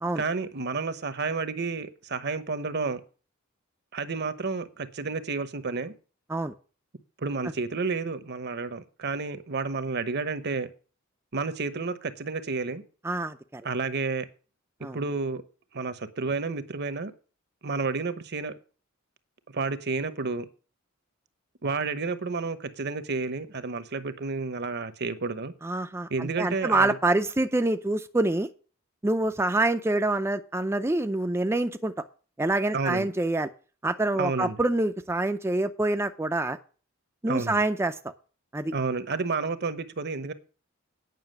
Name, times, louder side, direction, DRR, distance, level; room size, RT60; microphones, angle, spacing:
voice 1, 0.2-3.0 3.9-5.9 7.2-10.7 11.3-12.8 13.6-14.3 14.8-15.4 15.7-17.1 17.6-18.5 19.5-20.5 21.6-25.5 26.1-27.0 32.7-33.1 34.1-34.6 37.3-37.6 38.7-40.3, right 4 dB, 55° right, 13 dB, 0.9 m, -30 dB
voice 2, 13.0-13.6 14.8-15.0 25.6-28.5 29.0-31.9 32.4-33.5 33.8-36.6 37.2-38.0 38.5-38.7, right 2 dB, 10° right, 7 dB, 0.5 m, -26 dB
9.4 x 6.0 x 7.8 m, 0.37 s
head